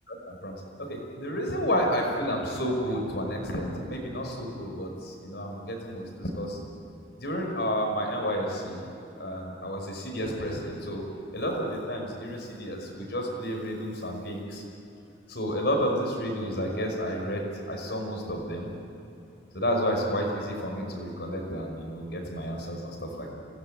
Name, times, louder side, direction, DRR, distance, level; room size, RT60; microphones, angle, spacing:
voice 1, 0.1-6.6 7.2-8.8 9.2-11.0 11.3-14.6 15.3-18.7 19.5-23.3, equal, 65° left, 1 dB, 5.6 m, -31 dB
26.5 x 18.0 x 9.1 m, 2.9 s
head